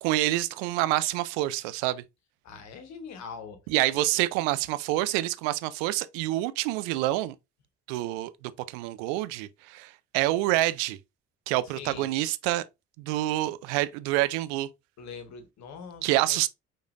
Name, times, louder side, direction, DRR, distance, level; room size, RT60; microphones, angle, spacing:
voice 1, 0.0-2.0 3.7-7.3 7.9-8.3 8.7-11.0 11.5-12.6 13.0-14.7 16.0-16.5, right 16 dB, 65° right, 0.5 m, -27 dB
voice 2, 2.4-3.6 3.9-4.0 11.8-12.1 15.0-16.5, left 5 dB, 55° left, 1.3 m, -42 dB
4.9 x 4.1 x 2.4 m
figure-of-eight pair, 45°, 33 cm